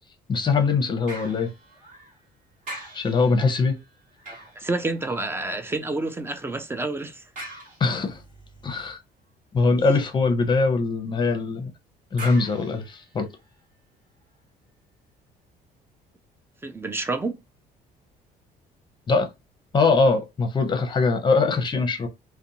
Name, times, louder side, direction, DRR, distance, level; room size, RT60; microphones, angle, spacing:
voice 1, 0.3-1.5 2.9-3.7 7.8-8.2 8.6-9.0 9.5-11.7 12.1-13.3 19.1-19.3 19.7-22.1, left 4 dB, 25° left, 0.7 m, -22 dB
sound 1, 1.1-2.3 2.6-5.5 7.4-8.3 12.2-13.6 14.2-14.3, right 1 dB, 45° right, 1.3 m, -42 dB
voice 2, 4.3-7.2 16.6-17.4, right 2 dB, 15° right, 0.4 m, -29 dB
2.5 x 2.1 x 2.8 m
cardioid pair, 110°, 17 cm